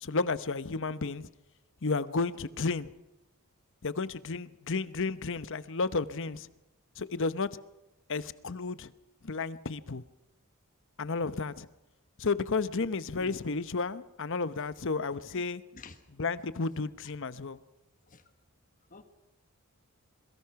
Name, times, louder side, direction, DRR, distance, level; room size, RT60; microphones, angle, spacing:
voice 1, 0.0-1.3 1.8-2.9 3.8-6.5 7.0-7.6 8.1-8.9 9.2-10.0 11.0-11.7 12.2-15.6 16.2-17.6, left 4 dB, 60° left, 0.9 m, -32 dB
voice 2, 13.1-13.3 15.3-15.4 15.7-16.0 18.1-18.2 18.9-19.0, left 3 dB, 40° left, 1.3 m, -49 dB
27.5 x 22.0 x 5.9 m
head